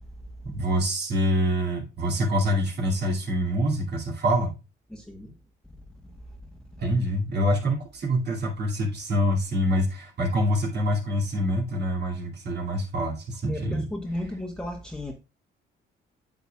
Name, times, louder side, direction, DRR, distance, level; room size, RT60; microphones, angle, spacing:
voice 1, 0.4-4.5 6.8-13.9, equal, 55° right, 2.5 m, -25 dB
voice 2, 4.9-5.4 13.5-15.1, left 1 dB, 5° left, 1.1 m, -34 dB
9.1 x 7.1 x 2.3 m
cardioid pair, 90°, 20 cm